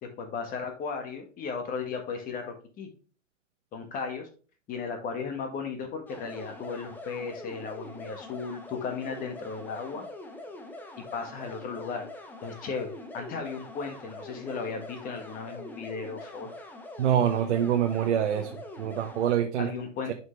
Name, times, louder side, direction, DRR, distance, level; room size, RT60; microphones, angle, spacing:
voice 1, 0.0-2.9 3.7-4.3 4.7-10.1 11.1-12.1 12.4-16.5 19.6-20.1, left 5 dB, 20° left, 5 dB, 1.6 m, -35 dB
sound 1, 6.1-19.3, left 2 dB, 5° left, 0.6 m, -44 dB
voice 2, 17.0-18.5 18.8-19.7, right 9 dB, 60° right, 4 dB, 1.1 m, -25 dB
7.6 x 5.9 x 3.2 m, 0.39 s
hypercardioid pair, 135°, 39 cm